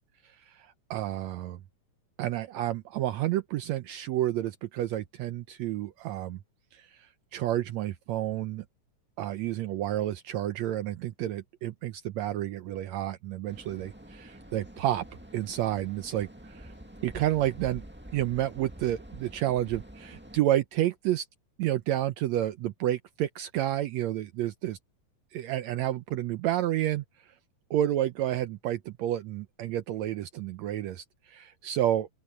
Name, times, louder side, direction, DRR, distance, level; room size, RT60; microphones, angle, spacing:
voice 1, 0.5-1.6 2.2-6.4 6.7-8.7 9.2-15.1 15.3-16.7 17.0-17.8 18.1-21.3 21.6-24.8 25.3-27.0 27.7-32.1, right 13 dB, 75° right, 1.8 m, -30 dB
sound 1, 13.5-20.4, right 1 dB, 5° right, 1.1 m, -47 dB
open air
omnidirectional pair, 3.6 m